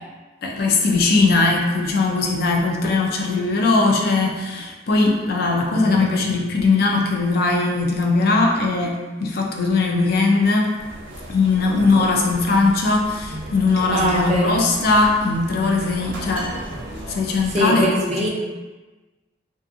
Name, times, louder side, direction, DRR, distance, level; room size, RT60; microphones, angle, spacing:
voice 1, 0.4-10.8 11.3-16.6 17.1-18.3, left 3 dB, 55° left, 1 dB, 0.4 m, -20 dB
voice 2, 5.6-6.1 13.9-14.6 17.5-18.3, right 1 dB, 35° right, -3 dB, 0.5 m, -22 dB
sound 1, 10.8-17.7, right 1 dB, 85° right, 0.5 m, -35 dB
2.5 x 2.5 x 2.4 m, 1.2 s
head